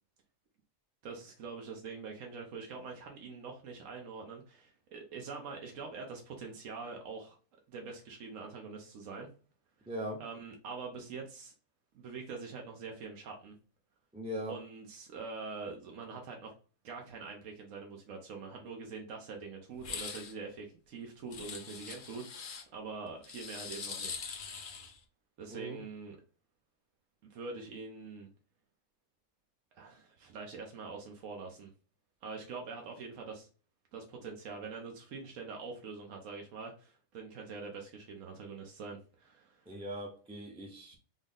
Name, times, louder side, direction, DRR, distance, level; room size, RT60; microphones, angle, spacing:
voice 1, 1.0-7.4 7.7-9.3 10.2-11.5 11.9-13.5 14.5-16.5 16.8-24.6 25.4-26.2 27.2-28.3 29.8-31.7 32.2-33.5 33.9-39.8, right 4 dB, 80° right, 1 dB, 1.1 m, -44 dB
voice 2, 9.9-10.2 14.1-14.6 25.5-25.8 39.7-41.0, equal, 5° right, -1 dB, 0.5 m, -40 dB
sound 1, 19.8-20.3 21.3-22.6 23.2-25.0, left 6 dB, 55° left, 0.6 m, -42 dB
3.9 x 2.0 x 3.5 m, 0.37 s
omnidirectional pair, 1.4 m